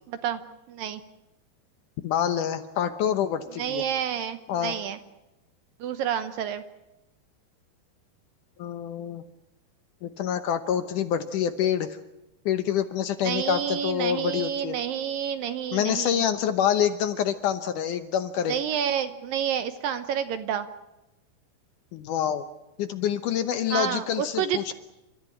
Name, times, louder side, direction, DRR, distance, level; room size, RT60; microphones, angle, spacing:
voice 1, 0.1-0.4 0.7-1.0 3.6-5.0 5.8-6.6 13.2-16.2 18.5-20.7 23.7-24.7, right 9 dB, 70° right, 10 dB, 2.4 m, -29 dB
voice 2, 2.0-3.9 4.5-4.7 8.6-9.2 10.0-12.0 12.5-14.8 15.7-18.6 21.9-22.4 22.8-24.7, left 9 dB, 70° left, 10 dB, 2.1 m, -26 dB
30.0 x 14.0 x 9.9 m, 0.95 s
omnidirectional pair, 4.7 m